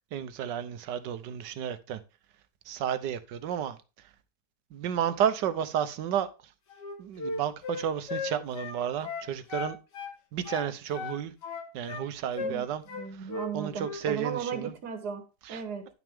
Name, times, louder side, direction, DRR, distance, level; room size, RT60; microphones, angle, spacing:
voice 1, 0.1-2.0 2.7-3.8 4.7-6.3 7.0-9.8 10.3-11.3 11.7-12.8 13.2-14.7 15.4-15.6, right 9 dB, 85° right, 1.5 m, -32 dB
Wind instrument woodwind instrument, 6.7-10.2 10.4-12.1 12.4-12.6 12.9-13.5 13.8-14.0, left 4 dB, 80° left, 2.1 m, -36 dB
voice 2, 12.4-15.9, right 6 dB, 70° right, 1.8 m, -36 dB
10.5 x 6.1 x 3.5 m
omnidirectional pair, 1.8 m